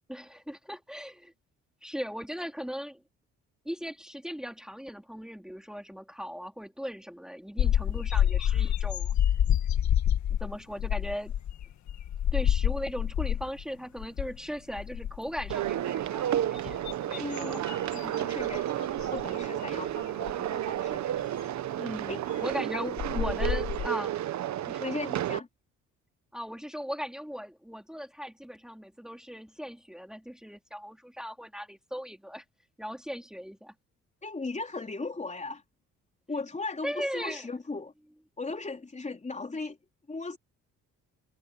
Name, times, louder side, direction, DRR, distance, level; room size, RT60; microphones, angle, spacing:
voice 1, 0.1-1.3 1.8-3.0 3.6-9.1 10.4-11.3 12.3-17.6 21.8-24.2 24.7-24.9 26.3-32.4 32.8-33.7 36.8-37.4, equal, ahead, 3.2 m, -38 dB
sound 1, 7.6-13.6 14.0-14.4 14.7-15.7 16.3-18.6 19.0-19.2 20.3-20.4 22.5-22.6 23.0-23.9, left 10 dB, 65° left, 1.8 m, -28 dB
sound 2, 15.5-25.4, right 12 dB, 65° right, 1.1 m, -32 dB
voice 2, 17.2-17.6 17.9-21.1 22.1-22.3 22.7-22.8 24.8-25.5 34.2-35.6 36.3-37.9 38.4-39.8 40.1-40.4, left 3 dB, 25° left, 3.5 m, -37 dB
cardioid pair, 90°, 30 cm